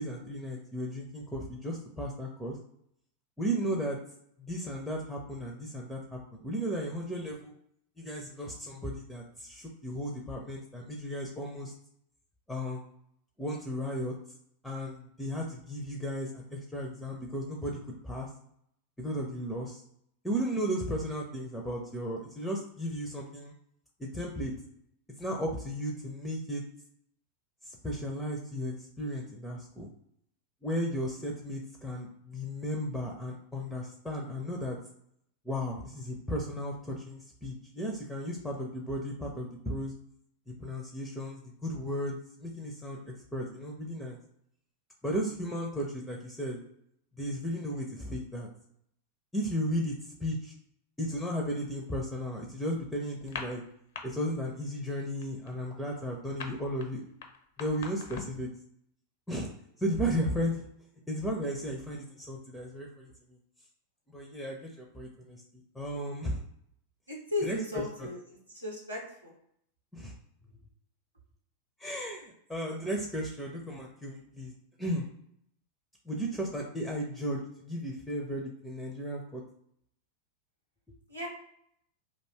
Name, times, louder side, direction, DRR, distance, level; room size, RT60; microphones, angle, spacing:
voice 1, 0.0-2.6 3.4-4.0 4.4-7.5 8.0-11.7 12.5-12.8 13.4-14.1 14.6-17.8 18.0-18.3 19.0-19.8 20.2-23.5 24.0-24.5 25.2-26.6 27.6-29.9 30.6-34.8 35.4-39.9 40.5-44.2 45.0-46.6 47.2-48.5 49.3-50.5 51.0-53.6 54.0-57.0 57.6-58.5 59.3-59.5 59.8-60.7 61.1-63.1 64.1-65.4 65.7-66.4 67.4-68.1 69.9-70.1 71.8-74.5 74.8-75.1 76.1-79.4, equal, 5° left, 0 dB, 0.5 m, -35 dB
sound 1, 53.2-54.0 54.3-54.7 54.9-58.5, left 5 dB, 55° left, 0.5 m, -42 dB
voice 2, 67.1-68.2 68.5-69.3 81.1-81.3, left 2 dB, 85° right, -3 dB, 0.7 m, -35 dB
2.5 x 2.3 x 3.3 m, 0.72 s
figure-of-eight pair, 90°, 0 cm